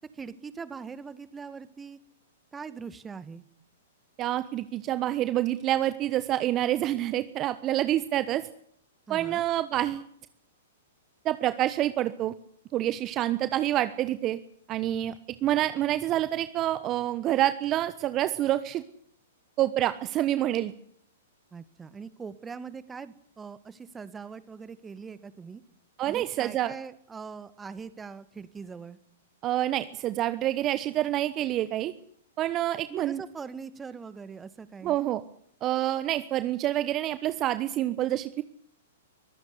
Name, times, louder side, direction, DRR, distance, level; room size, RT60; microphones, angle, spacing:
voice 1, 0.1-2.0 2.5-3.4 9.1-9.5 21.5-25.6 26.1-29.0 32.9-35.0, right 5 dB, 15° right, 15 dB, 1.8 m, -42 dB
voice 2, 4.2-8.5 9.1-10.1 11.2-12.3 12.7-14.4 14.7-15.1 15.4-18.8 19.6-20.7 26.0-26.7 29.4-31.9 32.4-33.2 34.8-35.2 35.6-38.4, right 13 dB, 30° right, 13 dB, 1.2 m, -27 dB
24.0 x 15.5 x 9.8 m, 0.68 s
hypercardioid pair, 115°, 0 cm